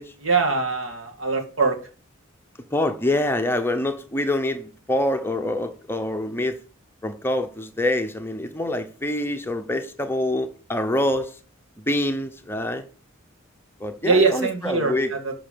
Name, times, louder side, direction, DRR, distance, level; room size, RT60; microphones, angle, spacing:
voice 1, 0.2-1.8 14.0-15.3, right 4 dB, 70° right, 2.3 m, -22 dB
voice 2, 2.7-6.6 7.0-11.4 11.9-12.9 13.8-15.1, left 1 dB, 10° left, 0.8 m, -25 dB
13.0 x 6.1 x 5.3 m
head